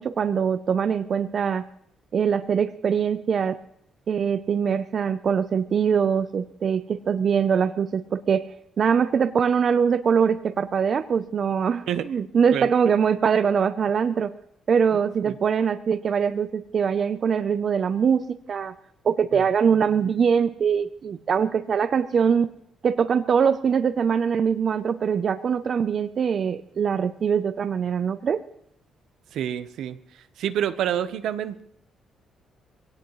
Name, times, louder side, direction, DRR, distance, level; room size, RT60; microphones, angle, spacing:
voice 1, 0.0-1.6 2.1-3.6 4.1-14.3 14.7-18.7 19.0-22.5 22.8-28.4, right 7 dB, 50° right, 10 dB, 0.6 m, -23 dB
voice 2, 29.3-30.0 30.4-31.6, right 10 dB, 80° right, 11 dB, 0.9 m, -27 dB
21.5 x 17.5 x 3.2 m, 0.72 s
cardioid pair, 90°, 0 cm